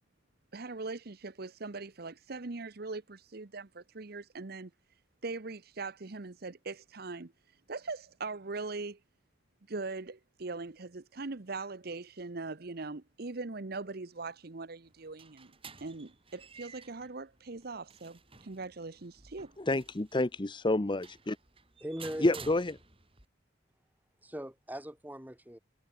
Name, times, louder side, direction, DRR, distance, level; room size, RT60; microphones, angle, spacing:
voice 1, 0.5-4.7 5.2-7.3 7.7-9.0 9.7-15.5 15.8-19.5, right 3 dB, 60° right, 1.0 m, -41 dB
sound 1, 14.8-23.3, right 5 dB, 30° right, 4.9 m, -53 dB
voice 2, 19.6-21.4 22.2-22.7, left 2 dB, 25° left, 0.8 m, -29 dB
voice 3, 21.8-22.5 24.2-25.6, equal, 10° right, 5.1 m, -40 dB
head